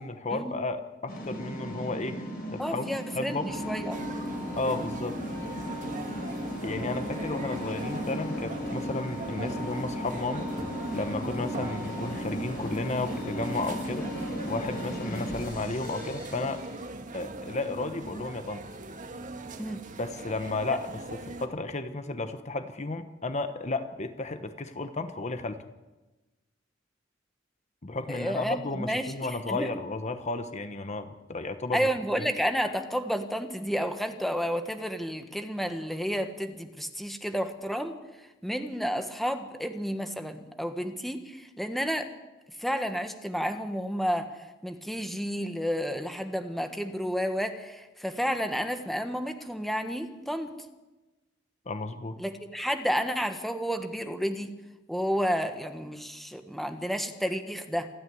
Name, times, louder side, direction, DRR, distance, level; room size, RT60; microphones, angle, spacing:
voice 1, 0.0-2.9 3.1-3.6 4.5-5.2 6.6-10.5 10.9-16.6 17.1-18.6 20.0-25.6 27.8-31.9 32.2-32.3 51.7-52.2, left 2 dB, 40° left, 9 dB, 1.0 m, -33 dB
sound 1, 1.1-16.8, equal, 55° left, 7.5 m, -36 dB
voice 2, 2.6-4.0 19.6-19.8 28.1-29.7 31.7-38.0 38.4-42.1 42.6-50.5 52.2-54.5 54.9-57.9, equal, ahead, 7 dB, 1.4 m, -31 dB
sound 2, 3.9-21.5, right 2 dB, 45° right, 1.8 m, -41 dB
27.5 x 10.0 x 9.7 m, 1.1 s
head